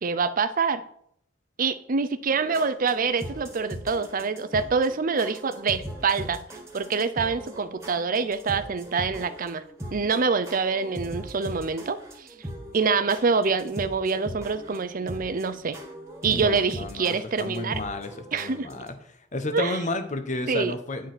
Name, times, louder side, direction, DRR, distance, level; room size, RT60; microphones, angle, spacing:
voice 1, 0.0-0.8 1.6-6.4 6.7-9.6 9.9-12.3 12.7-15.8 16.2-17.8 18.3-18.7 19.5-19.8 20.5-20.7, right 5 dB, 45° right, 13 dB, 0.5 m, -26 dB
sound 1, 2.3-18.9, equal, 15° right, 1.9 m, -40 dB
voice 2, 16.3-19.0 19.3-21.1, left 2 dB, 40° left, 9 dB, 1.0 m, -32 dB
9.4 x 4.7 x 6.0 m, 0.66 s
head